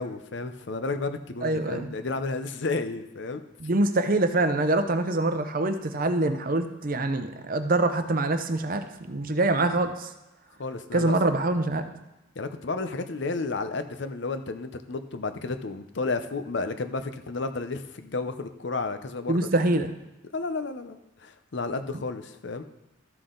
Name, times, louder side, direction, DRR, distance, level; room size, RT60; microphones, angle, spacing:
voice 1, 0.0-3.4 10.6-11.1 12.4-19.7 20.3-22.6, left 3 dB, 60° left, 9 dB, 0.7 m, -32 dB
voice 2, 1.4-1.9 3.6-10.1 10.9-11.9 19.3-19.9, right 2 dB, 40° right, 8 dB, 0.7 m, -25 dB
13.0 x 6.0 x 3.8 m, 0.99 s
head